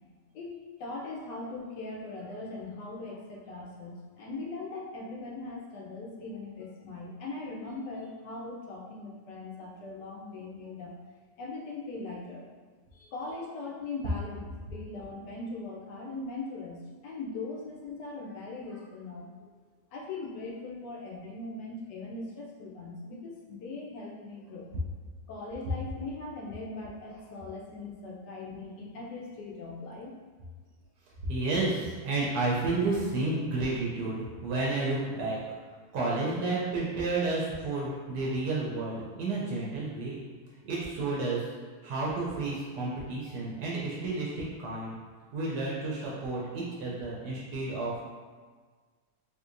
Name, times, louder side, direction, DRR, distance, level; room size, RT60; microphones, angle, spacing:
voice 1, 0.3-11.0 11.4-12.4 12.9-19.5 19.9-24.7 25.3-30.1, left 3 dB, 80° left, -2 dB, 1.2 m, -40 dB
voice 2, 31.3-35.4 35.9-40.2 40.7-41.4 41.8-45.0 45.3-48.1, right 3 dB, 80° right, -4 dB, 1.2 m, -31 dB
3.6 x 2.8 x 2.5 m, 1.5 s
omnidirectional pair, 1.8 m